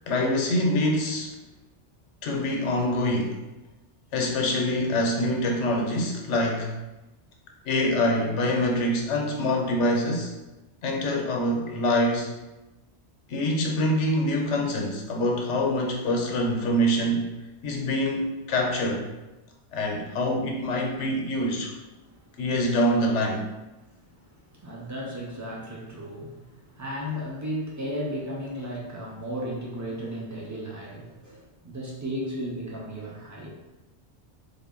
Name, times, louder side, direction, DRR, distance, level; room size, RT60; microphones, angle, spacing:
voice 1, 0.1-1.4 2.2-3.4 4.1-6.7 7.6-10.3 10.8-12.3 13.3-17.2 17.6-19.1 19.7-21.7 22.4-23.5, left 1 dB, 85° left, 1 dB, 1.0 m, -25 dB
voice 2, 21.6-22.4 23.8-33.5, equal, 30° right, -4 dB, 0.3 m, -35 dB
3.6 x 2.1 x 3.6 m, 1.0 s
omnidirectional pair, 1.2 m